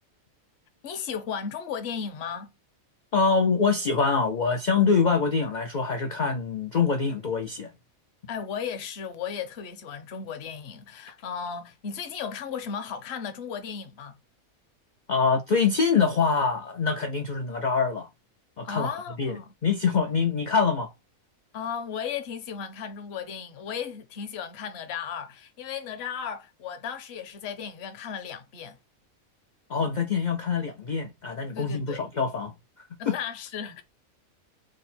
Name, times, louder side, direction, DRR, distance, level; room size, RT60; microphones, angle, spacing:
voice 1, 0.8-2.5 8.3-14.2 18.6-19.5 21.5-28.8 31.5-32.0 33.0-33.8, left 7 dB, 55° left, 0.9 m, -35 dB
voice 2, 3.1-7.7 15.1-18.1 18.6-18.9 19.2-20.9 29.7-32.5 33.1-33.2, left 5 dB, 75° left, 0.4 m, -24 dB
3.7 x 2.1 x 4.1 m
omnidirectional pair, 1.5 m